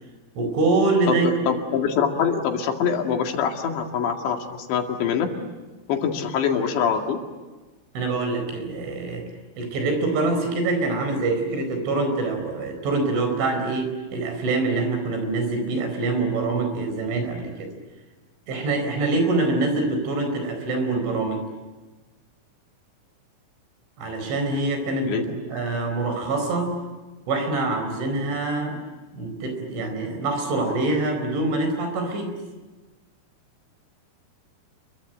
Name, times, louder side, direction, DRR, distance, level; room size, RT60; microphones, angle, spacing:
voice 1, 0.4-1.6 8.0-9.3 9.6-17.7 18.5-21.4 24.0-26.7 27.3-28.8 29.1-32.3, right 3 dB, 80° right, 6 dB, 7.0 m, -25 dB
voice 2, 1.1-5.3 5.9-7.2 25.1-25.2, left 7 dB, 75° left, 3 dB, 4.3 m, -24 dB
29.0 x 23.0 x 9.0 m, 1.3 s
omnidirectional pair, 5.3 m